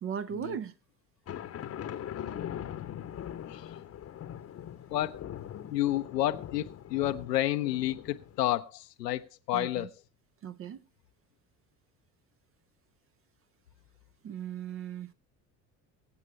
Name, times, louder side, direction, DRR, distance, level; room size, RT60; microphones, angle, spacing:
voice 1, 0.0-0.7 9.5-9.9 10.4-10.8 14.2-15.1, right 8 dB, 25° right, 0.6 m, -37 dB
sound 1, 1.3-8.4, left 10 dB, 30° left, 1.0 m, -41 dB
voice 2, 4.9-5.3 5.7-9.2 9.5-9.9, left 14 dB, 70° left, 0.8 m, -30 dB
24.0 x 8.3 x 3.2 m
figure-of-eight pair, 60°, 50 cm